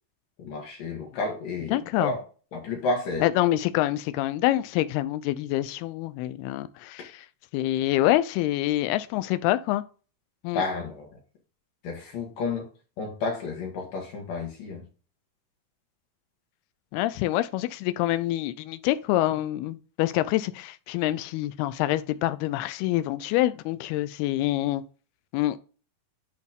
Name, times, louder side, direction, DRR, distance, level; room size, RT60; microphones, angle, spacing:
voice 1, 0.4-2.2 2.5-3.2 10.5-11.1 11.8-12.7 13.0-14.8, left 3 dB, 65° left, 3.0 m, -31 dB
voice 2, 1.7-2.1 3.2-7.3 7.5-9.8 10.4-10.6 16.9-24.8 25.3-25.6, left 15 dB, 90° left, 2.6 m, -26 dB
10.5 x 4.3 x 3.5 m
omnidirectional pair, 4.4 m